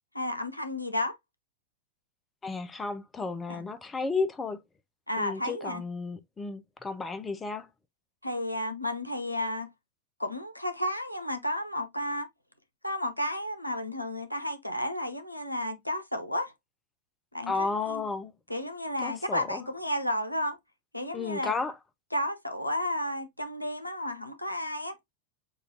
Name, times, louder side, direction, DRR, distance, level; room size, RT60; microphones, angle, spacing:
voice 1, 0.1-1.2 3.5-3.6 5.1-5.8 8.2-9.7 10.2-12.3 12.8-16.5 17.3-18.0 18.5-20.6 20.9-21.6 22.1-25.0, left 1 dB, 85° left, 0.7 m, -32 dB
voice 2, 2.4-4.6 5.2-7.7 17.5-18.3 19.0-19.7 21.1-21.7, left 4 dB, 15° left, 0.5 m, -33 dB
6.4 x 2.5 x 2.6 m
figure-of-eight pair, 90°, 0 cm